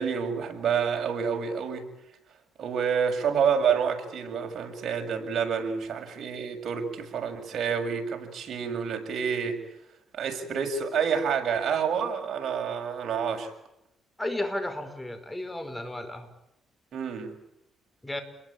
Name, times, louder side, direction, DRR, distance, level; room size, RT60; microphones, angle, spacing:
voice 1, 0.0-1.9 2.6-9.6 10.1-13.5 16.9-17.3, right 6 dB, 60° right, 3 dB, 7.4 m, -28 dB
voice 2, 14.2-16.3 18.0-18.2, left 1 dB, 15° left, 10 dB, 5.5 m, -33 dB
29.0 x 22.5 x 9.0 m, 0.82 s
cardioid pair, 90°, 0 cm